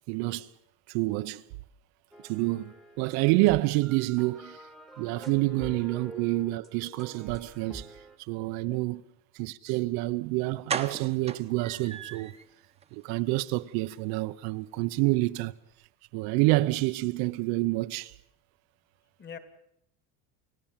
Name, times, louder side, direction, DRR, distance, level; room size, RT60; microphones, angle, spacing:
voice 1, 0.1-0.5 0.9-1.4 2.2-4.7 5.0-9.0 9.3-12.3 12.9-15.5 16.1-18.2, right 20 dB, 65° right, 0.8 m, -28 dB
sound 1, 2.1-8.2, right 2 dB, ahead, 1.4 m, -47 dB
voice 2, 5.4-5.8 8.6-8.8 19.2-19.4, left 7 dB, 25° left, 2.2 m, -45 dB
sound 2, 10.0-10.1 10.7-12.5 12.8-12.9 13.3-13.4 13.7-13.8, right 6 dB, 15° right, 1.1 m, -36 dB
29.5 x 16.5 x 7.4 m
cardioid pair, 170°, 41 cm